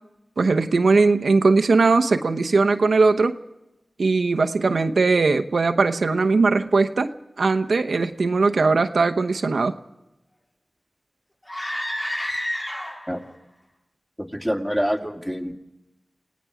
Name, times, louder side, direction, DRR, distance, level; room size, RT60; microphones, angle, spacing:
voice 1, 0.4-3.4 4.0-7.1 7.4-9.7, right 3 dB, 85° right, 7 dB, 0.9 m, -19 dB
sound 1, 11.4-13.2, left 1 dB, 25° left, 6.7 m, -29 dB
voice 2, 14.2-15.5, equal, 5° left, 2 dB, 2.3 m, -26 dB
29.0 x 18.0 x 5.0 m, 0.94 s
cardioid pair, 45°, 0 cm